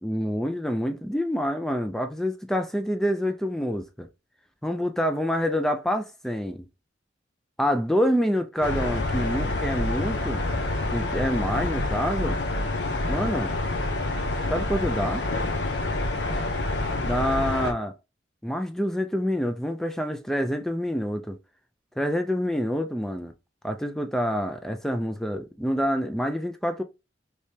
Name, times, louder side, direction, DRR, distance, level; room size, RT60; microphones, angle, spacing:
voice 1, 0.0-4.1 4.6-6.6 7.6-10.4 10.9-12.4 13.1-13.5 14.5-15.3 17.0-17.9 18.4-21.4 22.0-23.3 23.6-26.8, equal, ahead, 0.3 m, -27 dB
sound 1, 8.6-17.7, left 2 dB, 75° left, 0.7 m, -27 dB
3.3 x 3.2 x 2.8 m
head